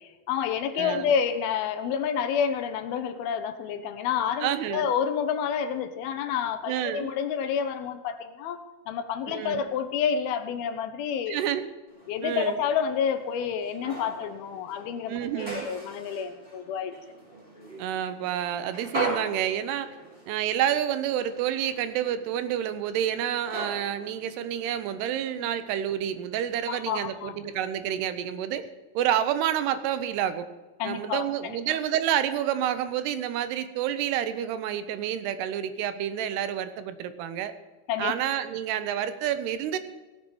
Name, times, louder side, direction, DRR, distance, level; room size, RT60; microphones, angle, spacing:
voice 1, 0.3-11.4 12.1-17.0 25.4-25.5 26.7-27.3 30.8-31.6 37.9-38.1, left 7 dB, 75° left, 9 dB, 2.6 m, -29 dB
voice 2, 0.8-1.1 4.4-4.9 6.7-7.1 9.3-9.6 11.3-11.7 12.2-12.6 15.1-15.7 17.8-19.9 20.3-28.7 28.9-30.5 30.8-37.5 38.0-39.8, right 10 dB, 85° right, 11 dB, 2.9 m, -29 dB
sound 1, 11.9-25.6, right 2 dB, 15° right, 4.3 m, -40 dB
17.0 x 6.9 x 6.2 m, 1.2 s
omnidirectional pair, 4.6 m